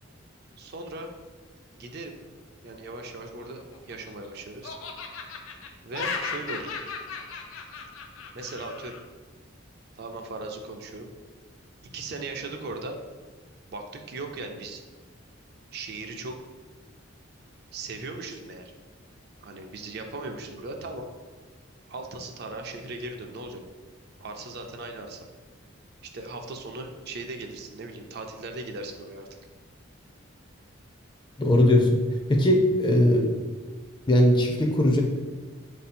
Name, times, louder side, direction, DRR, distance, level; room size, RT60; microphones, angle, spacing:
voice 1, 0.6-1.1 1.7-2.2 2.6-4.8 5.8-6.8 8.3-9.0 10.0-11.1 11.8-13.0 13.7-14.8 15.7-16.4 17.7-18.7 19.4-21.1 21.9-23.6 24.2-25.3 26.0-29.3, right 2 dB, 50° right, 4 dB, 0.4 m, -38 dB
Laughter, 3.4-4.3 4.6-9.0, left 5 dB, 85° left, 0.5 m, -36 dB
voice 2, 31.4-32.0 32.3-33.3 34.1-35.0, left 1 dB, 25° left, 2 dB, 0.4 m, -20 dB
3.8 x 2.7 x 4.2 m, 1.4 s
head